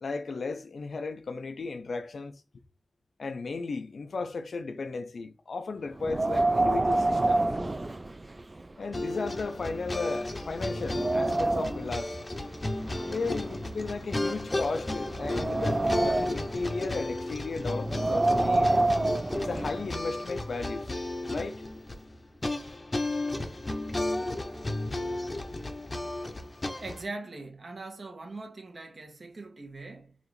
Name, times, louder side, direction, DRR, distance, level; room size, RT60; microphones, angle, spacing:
voice 1, 0.0-2.4 3.2-7.5 8.8-12.2 13.1-18.8 19.3-20.9 21.3-21.6, left 3 dB, 75° left, 0.4 m, -35 dB
Wind, 6.0-8.6 9.0-9.1 9.7-9.8 10.3-11.9 12.8-14.3 14.9-16.5 17.8-19.9, right 2 dB, 35° right, 0.3 m, -27 dB
sound 1, 8.9-27.0, left 2 dB, 35° left, 0.6 m, -33 dB
voice 2, 26.8-30.2, right 3 dB, 60° right, 1.1 m, -41 dB
4.8 x 2.5 x 3.1 m
cardioid pair, 50°, 0 cm